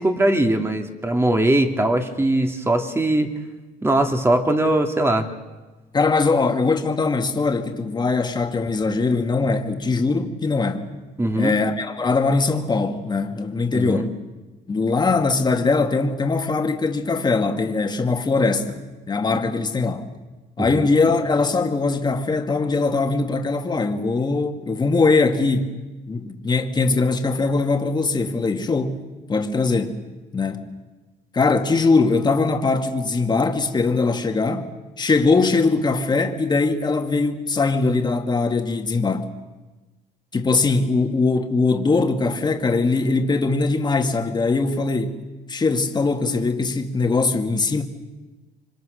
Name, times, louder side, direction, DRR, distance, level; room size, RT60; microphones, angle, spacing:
voice 1, 0.0-3.3 3.8-5.3 11.2-11.6 13.7-14.1 20.6-20.9, right 1 dB, 15° right, 2.7 m, -20 dB
voice 2, 5.9-10.9 11.4-14.1 14.7-18.8 19.1-20.1 20.6-25.7 26.1-29.0 29.3-30.0 30.3-30.7 31.3-34.7 35.0-39.3 40.3-45.2 45.5-47.8, left 3 dB, 25° left, 2.4 m, -21 dB
27.5 x 24.5 x 6.6 m
cardioid pair, 110°, 17 cm